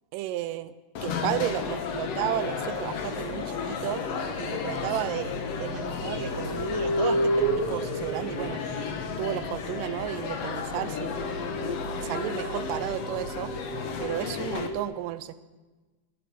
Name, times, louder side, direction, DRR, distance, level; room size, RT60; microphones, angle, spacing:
voice 1, 0.1-0.7 1.0-4.0 4.4-5.3 5.6-8.6 9.2-11.4 12.0-13.5 14.0-15.3, right 13 dB, 90° right, 14 dB, 2.3 m, -33 dB
sound 1, 1.0-14.7, left 5 dB, 60° left, 2.1 m, -33 dB
sound 2, 2.1-2.9 4.4-4.5 5.9-9.5 10.4-14.8, right 1 dB, 10° left, 5.5 m, -32 dB
21.0 x 10.5 x 6.1 m, 1.2 s
omnidirectional pair, 3.7 m